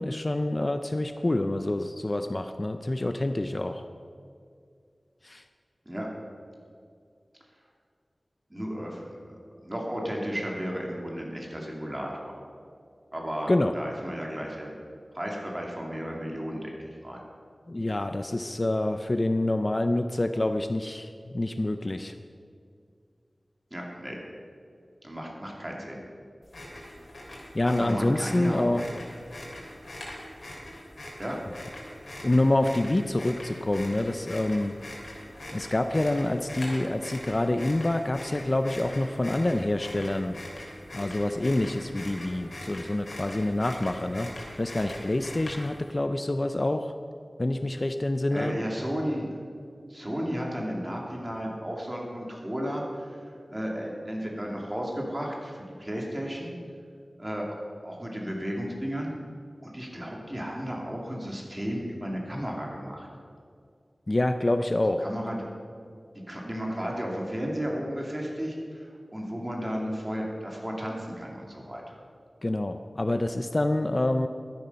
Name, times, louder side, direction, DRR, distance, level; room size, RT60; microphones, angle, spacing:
voice 1, 0.0-3.8 5.2-5.4 13.5-13.7 17.7-22.1 27.3-28.8 32.2-34.8 35.5-40.4 40.9-44.3 44.6-46.9 47.4-48.6 64.1-65.0 72.4-74.3, left 1 dB, 35° left, 8 dB, 0.5 m, -27 dB
voice 2, 8.5-9.1 9.6-12.3 13.1-14.7 15.1-16.7 17.0-17.2 23.7-24.2 25.0-26.0 27.7-28.9 31.2-31.4 48.3-49.2 49.9-53.2 53.5-56.5 57.2-57.5 57.8-59.1 59.6-63.1 65.0-65.4 66.3-68.9 69.1-72.0, equal, 20° right, -1 dB, 2.7 m, -33 dB
sound 1, 26.4-45.9, left 1 dB, 70° left, 3.5 m, -42 dB
12.5 x 10.0 x 5.6 m, 2.2 s
wide cardioid pair, 70°, 0 cm